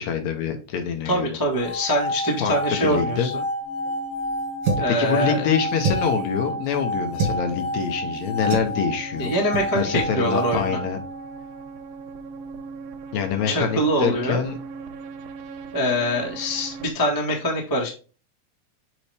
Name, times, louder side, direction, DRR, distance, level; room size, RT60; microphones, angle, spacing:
voice 1, 0.0-1.4 2.4-3.3 4.9-9.3 9.7-11.0 13.1-14.6, left 7 dB, 70° left, 5 dB, 2.1 m, -25 dB
voice 2, 1.0-3.4 4.8-5.5 9.2-10.8 13.4-14.4 15.7-17.9, equal, 15° left, -1 dB, 0.8 m, -24 dB
sound 1, 1.5-11.7, left 1 dB, 35° left, 2.4 m, -30 dB
sound 2, 3.6-16.9, right 4 dB, 90° right, 2.2 m, -40 dB
sound 3, 4.6-5.0 5.8-6.2 7.1-7.4 8.5-8.8 9.5-9.7 10.0-10.1 10.5-10.7, right 4 dB, 65° right, 2.3 m, -26 dB
7.2 x 4.0 x 3.4 m, 0.35 s
omnidirectional pair, 3.5 m